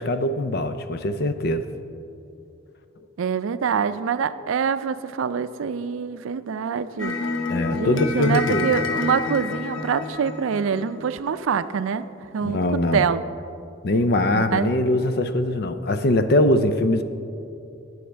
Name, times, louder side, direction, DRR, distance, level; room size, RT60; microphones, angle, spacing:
voice 1, 0.0-1.6 7.5-8.7 12.4-13.1 13.8-17.0, left 1 dB, 50° left, 10 dB, 0.5 m, -22 dB
voice 2, 3.2-7.2 7.7-12.1 12.3-12.6 12.9-13.2 14.2-14.7, right 6 dB, 90° right, 13 dB, 0.4 m, -25 dB
sound 1, 7.0-11.3, left 4 dB, 85° left, 0.8 m, -29 dB
18.0 x 6.4 x 3.4 m, 2.7 s
head